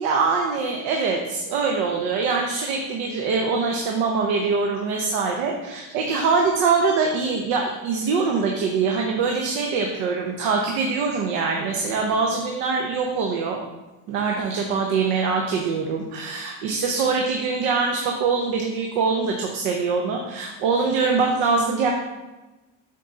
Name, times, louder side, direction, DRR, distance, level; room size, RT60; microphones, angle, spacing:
voice 1, 0.0-13.6 14.1-21.9, right 4 dB, 85° right, 1 dB, 0.9 m, -23 dB
7.5 x 4.2 x 3.8 m, 1.1 s
cardioid pair, 155°, 34 cm